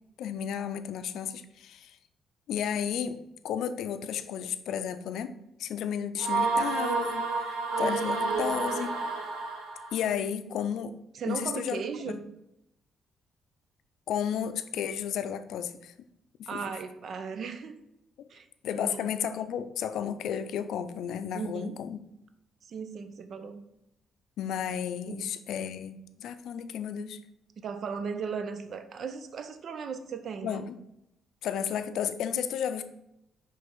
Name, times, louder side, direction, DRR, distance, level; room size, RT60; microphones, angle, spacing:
voice 1, 0.2-2.0 2.5-3.2 3.4-9.0 9.9-11.0 11.3-12.2 14.1-15.9 16.4-16.6 18.6-22.0 24.4-27.2 30.4-30.7 31.4-32.8, left 8 dB, 80° left, 11 dB, 0.4 m, -33 dB
sound 1, 6.2-10.0, right 3 dB, 90° right, 1.2 m, -29 dB
voice 2, 11.1-12.3 16.5-17.8 18.3-18.5 18.7-19.1 21.3-21.8 22.7-23.6 25.1-25.2 27.6-30.7, right 6 dB, 60° right, 9 dB, 0.6 m, -37 dB
5.4 x 3.4 x 5.3 m, 0.83 s
cardioid pair, 90°, 0 cm